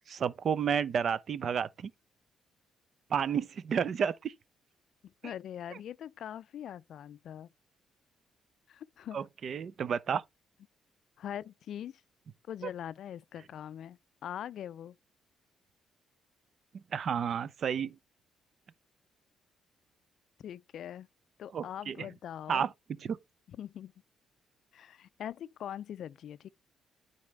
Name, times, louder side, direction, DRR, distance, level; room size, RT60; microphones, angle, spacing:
voice 1, 0.1-1.9 3.1-4.3 9.1-10.2 16.9-18.0 21.5-22.0 22.5-22.7 23.0-23.2, right 7 dB, 55° right, 0.5 m, -31 dB
voice 2, 5.0-7.5 8.7-9.2 11.2-12.0 12.5-15.0 20.4-21.1 21.4-22.7 23.5-23.9 24.7-26.5, left 10 dB, 70° left, 0.3 m, -42 dB
9.6 x 4.1 x 3.2 m
cardioid pair, 90°, 0 cm